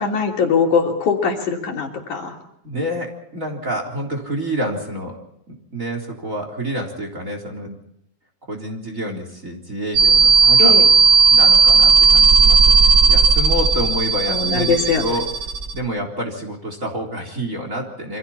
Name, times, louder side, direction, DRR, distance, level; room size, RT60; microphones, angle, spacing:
voice 1, 0.0-2.4 10.6-10.9 14.3-15.0, left 5 dB, 70° left, 1 dB, 4.7 m, -21 dB
voice 2, 2.6-5.2 5.5-7.8 8.5-10.7 11.3-15.3 15.7-18.2, equal, 25° right, 3 dB, 4.1 m, -28 dB
sound 1, 9.9-15.8, right 5 dB, 40° right, 2.0 m, -14 dB
28.5 x 25.5 x 4.4 m, 0.78 s
omnidirectional pair, 3.6 m